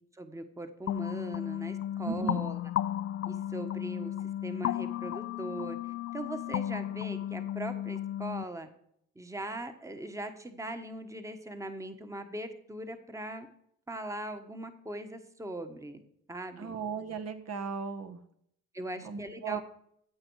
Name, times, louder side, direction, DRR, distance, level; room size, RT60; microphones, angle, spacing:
voice 1, 0.2-2.6 3.3-4.1 4.4-8.7 9.1-13.5 13.9-16.0 16.3-16.7 18.7-19.6, right 1 dB, 10° right, 7 dB, 1.3 m, -40 dB
sound 1, 0.9-8.4, left 12 dB, 50° left, 0.4 m, -34 dB
voice 2, 2.0-2.4 16.6-18.2 19.0-19.6, right 5 dB, 55° right, 6 dB, 1.3 m, -36 dB
15.0 x 7.7 x 4.7 m, 0.70 s
cardioid pair, 90°, 30 cm